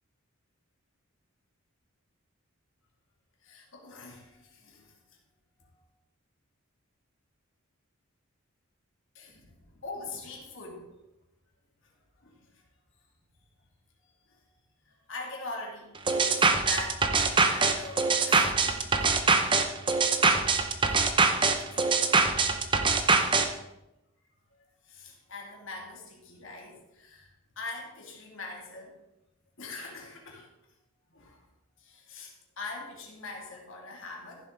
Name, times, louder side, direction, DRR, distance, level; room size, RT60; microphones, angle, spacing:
voice 1, 3.4-5.2 5.6-5.8 9.1-10.9 11.8-11.9 12.2-12.6 14.0-14.4 14.8-19.4 20.9-21.0 21.7-22.1 23.2-23.3 24.8-29.0 29.6-30.5 31.1-31.5 31.8-34.5, left 3 dB, 65° left, -1 dB, 2.6 m, -43 dB
sound 1, 16.1-23.5, right 4 dB, 20° right, 0.7 m, -23 dB
14.5 x 6.9 x 3.9 m, 0.92 s
head